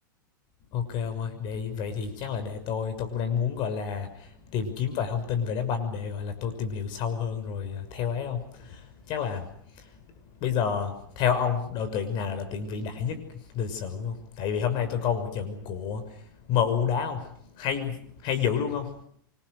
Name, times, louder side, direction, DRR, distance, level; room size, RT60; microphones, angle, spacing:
voice 1, 0.7-19.0, left 7 dB, 45° left, 10 dB, 6.1 m, -30 dB
28.0 x 25.0 x 6.5 m, 0.65 s
hypercardioid pair, 105°, 11 cm